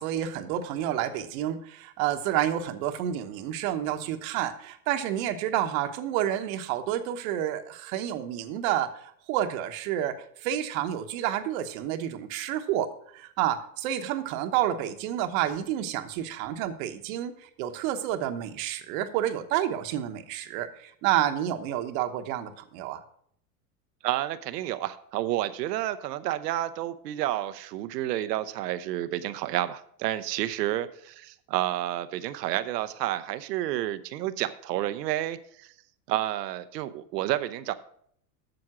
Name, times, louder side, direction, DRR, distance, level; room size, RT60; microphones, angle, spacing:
voice 1, 0.0-8.9 9.3-10.2 10.4-12.9 13.1-17.3 17.6-23.0, right 11 dB, 60° right, 9 dB, 1.1 m, -29 dB
voice 2, 24.0-35.7 36.1-37.7, right 14 dB, 80° right, 13 dB, 0.8 m, -30 dB
7.9 x 7.1 x 5.9 m, 0.65 s
hypercardioid pair, 115°, 48 cm